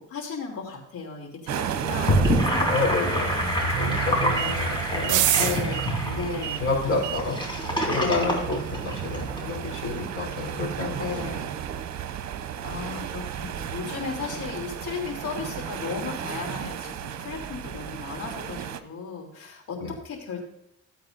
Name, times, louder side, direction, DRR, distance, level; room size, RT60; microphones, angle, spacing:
voice 1, 0.0-2.7 3.0-3.6 4.0-4.6 5.3-6.7 7.9-8.6 10.9-11.5 12.6-20.4, left 5 dB, 75° left, 1 dB, 3.2 m, -35 dB
sound 1, 1.5-18.8, right 8 dB, 65° right, 0.9 m, -34 dB
Gurgling / Sink (filling or washing), 1.9-9.4, equal, 15° left, 3.7 m, -26 dB
voice 2, 2.7-3.3 3.8-5.3 5.6-7.4 7.7-11.3 19.8-19.9, left 3 dB, 50° left, -1 dB, 4.3 m, -30 dB
sound 2, 3.7-13.8, right 14 dB, 85° right, 0.5 m, -32 dB
15.5 x 8.4 x 2.6 m, 0.81 s
cardioid pair, 90°, 30 cm